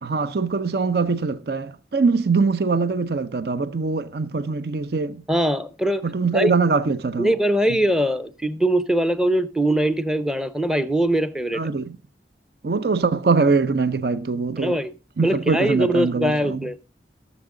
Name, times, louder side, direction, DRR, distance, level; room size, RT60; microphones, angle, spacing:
voice 1, 0.0-5.2 6.0-7.3 11.5-12.0 12.6-14.8 15.2-16.6, right 4 dB, 60° right, 0.5 m, -22 dB
voice 2, 5.3-6.0 6.3-6.5 7.2-11.6 14.6-14.9 15.2-16.8, right 1 dB, 5° right, 0.7 m, -22 dB
16.5 x 7.2 x 3.7 m
head